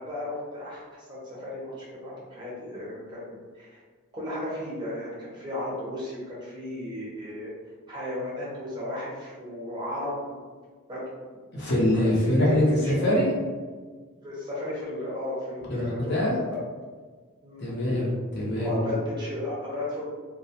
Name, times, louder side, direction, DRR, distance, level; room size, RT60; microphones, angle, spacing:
voice 1, 0.0-3.8 4.1-7.5 7.9-10.4 10.9-11.0 11.9-13.1 14.2-16.2 16.5-16.6 17.4-17.7 18.5-20.1, left 1 dB, 20° right, -6 dB, 0.6 m, -35 dB
voice 2, 11.5-13.3 15.7-16.4 17.6-18.9, left 1 dB, 50° left, -5 dB, 0.6 m, -24 dB
2.2 x 2.1 x 2.7 m, 1.5 s
head